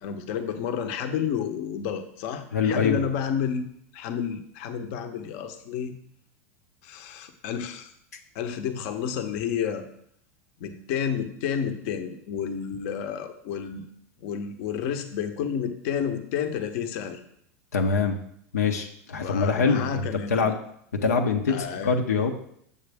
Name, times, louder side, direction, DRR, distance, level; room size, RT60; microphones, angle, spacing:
voice 1, 0.0-3.7 3.9-5.9 6.8-7.9 8.3-9.8 10.6-13.9 14.2-17.2 19.2-20.5 21.5-21.9, left 7 dB, 60° left, 7 dB, 0.9 m, -30 dB
voice 2, 2.5-3.0 8.1-8.2 17.7-18.2 18.5-20.6 21.0-22.3, left 5 dB, 90° left, 3 dB, 0.8 m, -24 dB
7.4 x 6.9 x 3.5 m, 0.70 s
hypercardioid pair, 110°, 8 cm